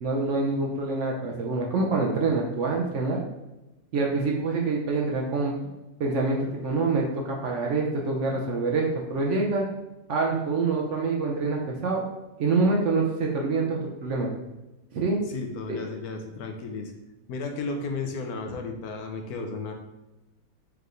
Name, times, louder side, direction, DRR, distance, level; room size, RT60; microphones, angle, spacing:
voice 1, 0.0-3.2 3.9-5.5 6.0-9.6 10.1-12.0 12.4-14.3 14.9-15.2 15.7-15.8, right 3 dB, 65° right, 0 dB, 0.8 m, -26 dB
voice 2, 15.3-16.9 17.3-19.7, left 4 dB, 80° left, 4 dB, 1.1 m, -33 dB
4.7 x 3.3 x 2.5 m, 1.0 s
omnidirectional pair, 1.6 m